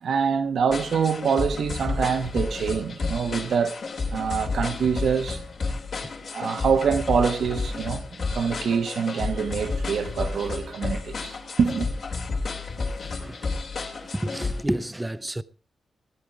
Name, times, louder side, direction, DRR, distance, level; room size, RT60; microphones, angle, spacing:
voice 1, 0.0-3.8 4.1-5.4 6.3-8.0 8.3-11.9, right 6 dB, 75° right, 1.4 m, -25 dB
sound 1, 0.7-14.6, left 3 dB, 55° left, 3.0 m, -31 dB
voice 2, 13.0-13.5 13.8-15.4, right 1 dB, 10° right, 0.6 m, -31 dB
16.0 x 9.7 x 4.8 m
wide cardioid pair, 120°, 0 cm